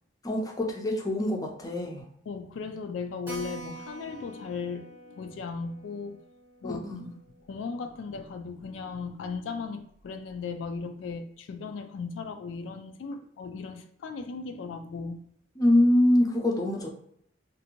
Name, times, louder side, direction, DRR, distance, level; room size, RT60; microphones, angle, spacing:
voice 1, 0.2-2.0 6.6-7.2 15.6-16.9, left 1 dB, 20° left, 1 dB, 0.5 m, -24 dB
voice 2, 2.3-6.2 6.6-6.9 7.5-15.2, left 4 dB, 80° left, 6 dB, 0.3 m, -37 dB
Keyboard (musical), 3.3-8.3 8.6-8.7 9.0-9.1 9.3-9.4 10.0-10.3, right 2 dB, 10° right, 0.8 m, -46 dB
2.6 x 2.5 x 2.9 m, 0.69 s
head